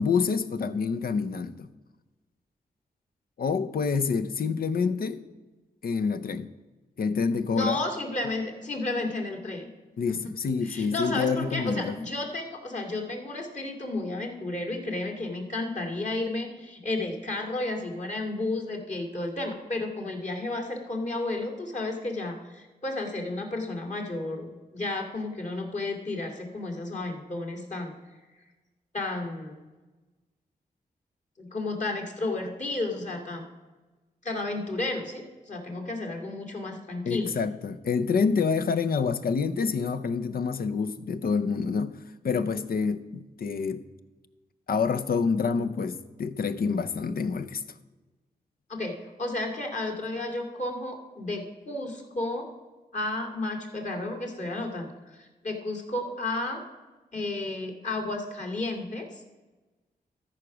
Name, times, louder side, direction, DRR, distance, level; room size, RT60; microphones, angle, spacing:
voice 1, 0.0-1.7 3.4-5.2 5.8-6.5 7.0-7.8 10.0-12.0 37.0-42.0 42.2-43.8 44.7-47.6, left 5 dB, 65° left, 0.7 m, -27 dB
voice 2, 7.5-9.7 10.1-10.2 10.6-27.9 28.9-29.5 31.4-33.5 34.2-37.3 48.7-52.5 52.9-56.6 57.1-59.1, left 2 dB, 45° left, 2.5 m, -32 dB
13.5 x 5.0 x 6.0 m
cardioid pair, 50°, 16 cm